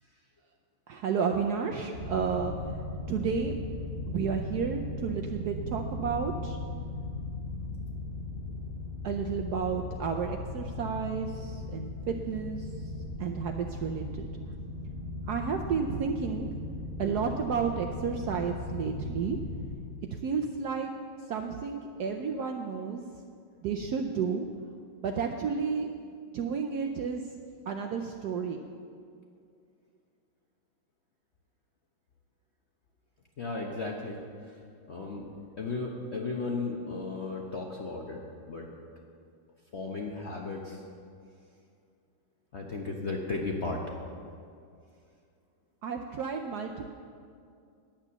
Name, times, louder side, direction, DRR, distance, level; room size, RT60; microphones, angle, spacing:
voice 1, 0.9-2.5 3.1-3.6 4.1-6.6 9.0-12.7 13.2-14.3 15.3-16.5 17.0-19.4 20.1-20.9 21.3-23.0 23.6-24.5 25.0-25.9 26.3-27.2 27.7-28.6 45.8-46.9, right 6 dB, 70° right, 3 dB, 0.9 m, -31 dB
sound 1, 1.9-19.7, left 2 dB, 30° left, 3.7 m, -38 dB
voice 2, 33.4-34.2 34.5-34.6 34.9-35.3 35.6-38.2 38.5-38.7 39.7-40.8 42.5-43.8, left 3 dB, 50° left, 0 dB, 0.8 m, -35 dB
10.0 x 9.0 x 6.9 m, 2.4 s
omnidirectional pair, 2.2 m